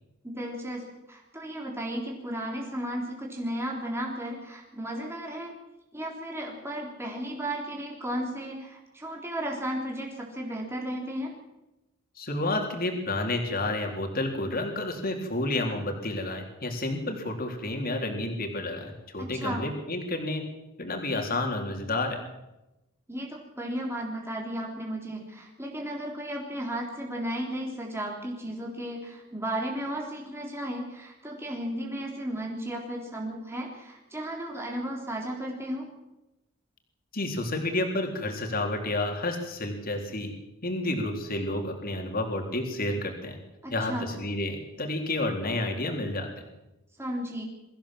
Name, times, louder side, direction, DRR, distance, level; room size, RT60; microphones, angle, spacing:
voice 1, 0.2-5.5 5.9-11.3 19.2-19.7 23.1-35.9 43.6-44.1 47.0-47.4, right 1 dB, 10° right, -1 dB, 3.6 m, -34 dB
voice 2, 12.2-20.4 20.8-22.2 37.1-40.3 40.6-43.4 43.7-46.3, left 2 dB, 45° left, 3 dB, 3.8 m, -30 dB
23.0 x 15.5 x 7.7 m, 0.96 s
head